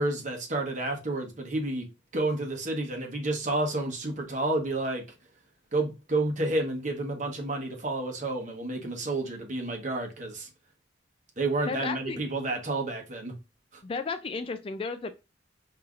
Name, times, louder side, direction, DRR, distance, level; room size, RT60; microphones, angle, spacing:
voice 1, 0.0-1.9 2.1-5.0 5.7-10.5 11.4-13.3, right 2 dB, 40° right, 1.1 m, -30 dB
voice 2, 11.7-12.2 13.8-15.1, left 4 dB, 30° left, 0.3 m, -33 dB
5.4 x 2.8 x 2.4 m
head